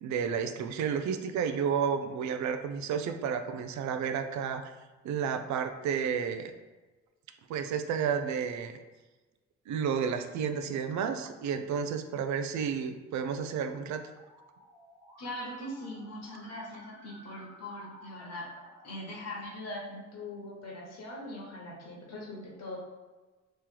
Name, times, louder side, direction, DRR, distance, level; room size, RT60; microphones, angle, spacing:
voice 1, 0.0-4.6 5.0-6.5 7.5-8.8 9.7-14.0, right 7 dB, 70° right, 8 dB, 0.4 m, -31 dB
Musical instrument, 13.9-19.4, equal, 15° right, 1.1 m, -55 dB
voice 2, 15.2-18.5 18.8-22.8, left 1 dB, 55° left, -2 dB, 1.3 m, -41 dB
3.1 x 2.9 x 3.7 m, 1.2 s
cardioid pair, 90°, 30 cm